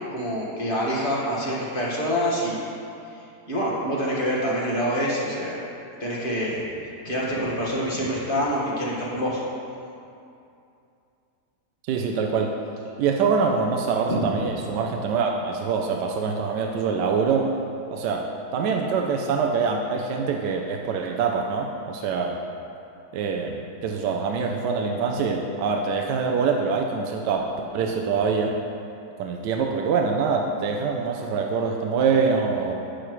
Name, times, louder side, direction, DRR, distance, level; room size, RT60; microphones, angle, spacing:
voice 1, 0.1-2.6 3.2-5.6 6.0-9.4 14.1-14.4, equal, 30° left, -6 dB, 1.7 m, -26 dB
voice 2, 11.8-12.5 13.0-17.5 17.9-22.4 23.1-27.4 27.7-28.6 29.2-32.7, right 5 dB, 85° right, 1 dB, 1.3 m, -24 dB
11.0 x 8.7 x 3.1 m, 2.6 s
omnidirectional pair, 1.8 m